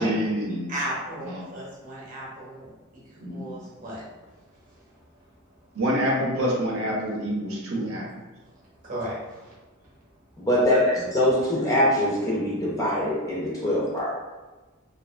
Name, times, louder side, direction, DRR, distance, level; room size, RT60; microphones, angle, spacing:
voice 1, 0.0-0.7 1.3-1.5 3.2-3.4 5.7-8.0, equal, 75° right, -3 dB, 0.6 m, -26 dB
voice 2, 0.7-4.1 4.5-5.0 8.4-8.5 8.8-9.5 10.7-11.0, equal, 40° right, -6 dB, 0.9 m, -35 dB
voice 3, 10.4-14.1, left 1 dB, 15° left, -6 dB, 0.6 m, -23 dB
2.4 x 2.4 x 2.4 m, 1.2 s
head